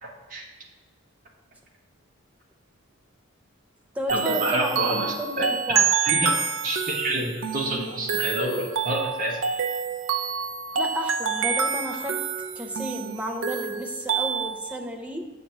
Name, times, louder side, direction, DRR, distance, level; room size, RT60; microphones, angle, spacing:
voice 1, 0.0-0.4 4.1-5.5 6.0-6.3 6.6-9.4, right 1 dB, 40° right, -2 dB, 1.2 m, -28 dB
voice 2, 3.9-4.8 5.2-5.9 10.7-12.1 12.6-15.2, equal, 5° right, 1 dB, 0.6 m, -32 dB
sound 1, 4.1-14.8, right 6 dB, 70° right, 0.5 m, -27 dB
7.2 x 3.1 x 5.9 m, 1.3 s
head